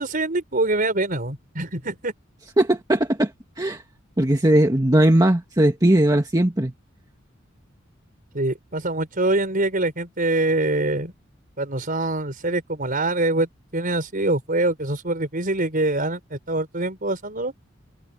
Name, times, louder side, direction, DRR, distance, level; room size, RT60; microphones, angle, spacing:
voice 1, 0.0-2.1 8.3-11.1 11.6-17.5, right 2 dB, 45° right, 4.8 m, -24 dB
voice 2, 2.6-3.3 3.6-3.8 4.2-6.7, right 1 dB, 20° right, 1.6 m, -18 dB
head